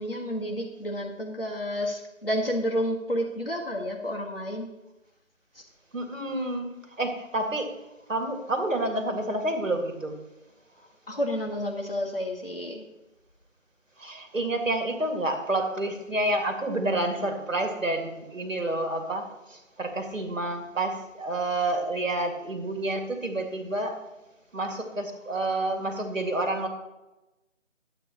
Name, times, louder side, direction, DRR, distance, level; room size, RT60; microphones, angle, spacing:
voice 1, 0.0-4.7 5.5-5.7 10.8-12.8, equal, 45° left, 0 dB, 1.4 m, -30 dB
voice 2, 5.9-7.7 8.1-10.1 14.0-24.0 24.5-26.7, right 2 dB, 70° right, 4 dB, 1.9 m, -29 dB
12.0 x 8.1 x 2.9 m, 1.0 s
figure-of-eight pair, 180°, 40 cm